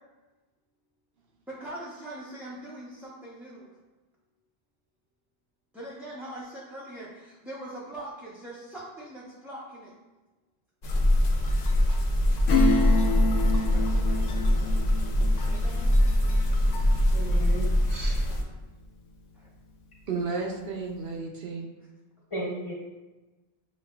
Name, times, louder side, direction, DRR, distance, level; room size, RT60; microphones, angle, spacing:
voice 1, 1.5-3.7 5.7-9.9 12.4-12.5 13.5-14.8 15.5-16.0 18.3-18.6 19.3-19.5, right 1 dB, ahead, -9 dB, 0.5 m, -42 dB
sound 1, 10.8-18.4, left 1 dB, 55° left, 0.5 m, -23 dB
Acoustic guitar / Strum, 12.5-18.7 19.1-19.2, left 3 dB, 85° left, 0.9 m, -30 dB
voice 2, 17.1-18.2 22.3-22.7, equal, 30° left, -8 dB, 1.4 m, -35 dB
voice 3, 20.1-21.7, right 4 dB, 70° right, 0 dB, 0.8 m, -32 dB
6.9 x 2.3 x 2.2 m, 1.2 s
omnidirectional pair, 1.1 m